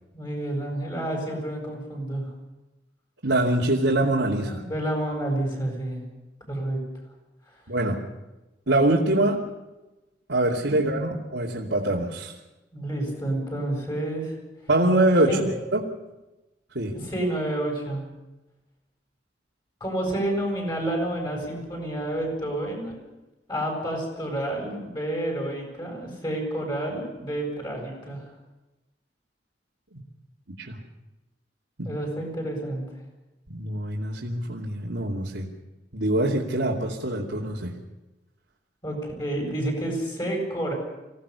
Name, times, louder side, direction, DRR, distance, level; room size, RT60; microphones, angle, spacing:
voice 1, 0.1-2.3 4.4-6.0 6.5-6.8 10.7-10.8 12.7-14.4 15.2-15.5 16.9-18.1 19.8-23.0 23.5-28.2 31.8-32.8 38.8-40.7, right 1 dB, 25° left, 1 dB, 7.8 m, -29 dB
voice 2, 3.2-4.6 7.7-8.0 8.7-9.4 10.3-12.3 14.7-15.9 16.7-16.9 29.9-30.0 30.6-30.8 31.8-31.9 33.5-35.5 35.9-37.7, right 1 dB, 80° right, -4 dB, 2.7 m, -24 dB
25.0 x 17.0 x 7.0 m, 1.0 s
head